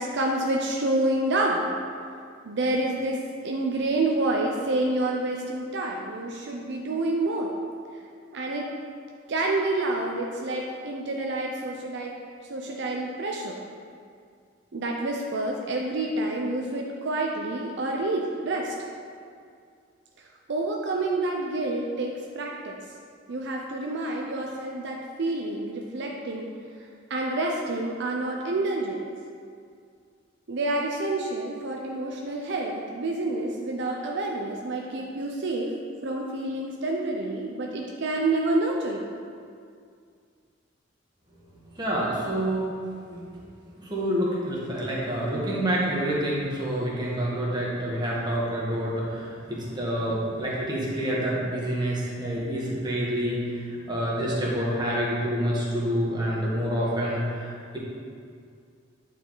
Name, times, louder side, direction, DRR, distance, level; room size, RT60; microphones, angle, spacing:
voice 1, 0.0-1.7 2.4-7.5 8.3-8.7 9.3-12.1 12.5-13.6 14.7-18.7 20.5-22.8 23.3-26.5 27.1-29.0 30.5-35.7 36.0-39.1, right 2 dB, 65° right, 0 dB, 0.6 m, -28 dB
voice 2, 41.7-42.7 43.1-43.2 43.7-57.8, equal, 25° right, -6 dB, 1.5 m, -28 dB
9.0 x 4.9 x 3.9 m, 2.2 s
head